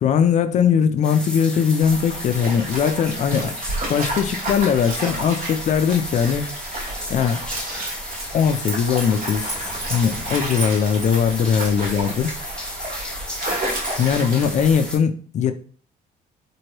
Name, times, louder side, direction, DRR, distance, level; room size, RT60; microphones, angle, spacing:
voice 1, 0.0-3.5 3.9-6.4 7.1-7.4 8.3-9.5 9.9-12.3 14.0-15.5, left 7 dB, 45° left, 0.4 m, -20 dB
sound 1, 1.0-15.0, left 1 dB, 5° left, 0.7 m, -34 dB
Stream, 1.8-14.9, right 1 dB, 50° right, 1.2 m, -31 dB
3.0 x 2.6 x 2.9 m
cardioid pair, 110°, 17 cm